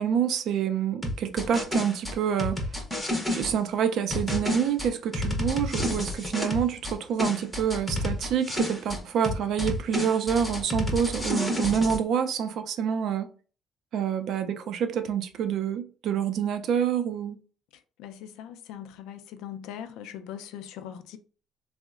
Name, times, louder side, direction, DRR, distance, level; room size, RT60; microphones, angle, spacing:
voice 1, 0.0-2.7 3.3-13.3 13.9-17.4, right 8 dB, 55° right, 0.4 m, -27 dB
sound 1, 1.0-3.5 4.1-6.9 7.2-9.0 9.2-12.0, left 1 dB, 5° left, 0.6 m, -30 dB
voice 2, 18.0-21.2, left 9 dB, 90° left, 0.3 m, -41 dB
3.6 x 2.0 x 2.3 m
cardioid pair, 150°, 0 cm